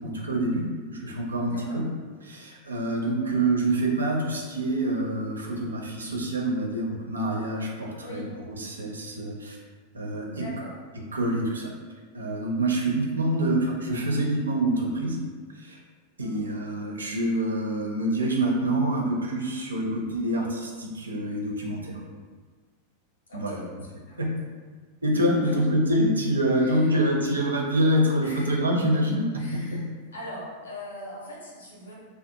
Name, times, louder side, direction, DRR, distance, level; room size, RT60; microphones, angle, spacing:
voice 1, 0.0-1.8 2.2-9.6 9.9-10.4 11.1-11.7 12.1-15.2 15.5-15.8 16.2-22.0 23.3-23.6 24.2-24.3 25.0-29.3 29.7-29.8, right 1 dB, 75° right, 0 dB, 0.4 m, -26 dB
voice 2, 1.4-1.8 3.2-3.4 8.0-8.3 10.3-10.7 16.2-16.4 23.3-23.7 24.1-24.2 25.3-25.5 26.6-27.0 28.2-28.5 28.8-28.9 29.4-29.8 30.1-31.9, left 1 dB, 70° left, -4 dB, 0.7 m, -41 dB
2.5 x 2.3 x 2.7 m, 1.5 s
figure-of-eight pair, 90°, 0 cm